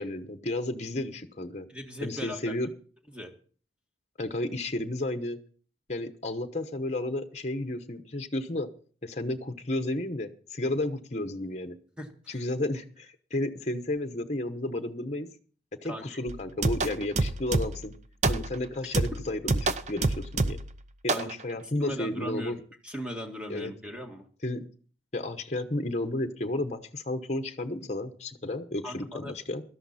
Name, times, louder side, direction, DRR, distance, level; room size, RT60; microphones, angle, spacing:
voice 1, 0.0-1.7 2.0-2.7 4.2-5.4 5.9-8.7 9.0-11.8 12.3-15.3 15.8-17.9 18.3-19.6 19.9-20.6 21.0-22.6 23.5-23.7 24.4-24.6 25.1-29.6, left 1 dB, 35° left, 7 dB, 1.0 m, -32 dB
voice 2, 1.7-2.4 3.1-3.3 12.0-12.4 15.9-16.2 21.1-22.5 22.8-24.2 28.8-29.3, equal, 5° right, 3 dB, 1.9 m, -38 dB
sound 1, 16.3-17.9 18.2-18.6 18.9-20.8 21.1-21.3, right 2 dB, 40° right, 0.7 m, -28 dB
16.5 x 13.0 x 4.2 m, 0.42 s
head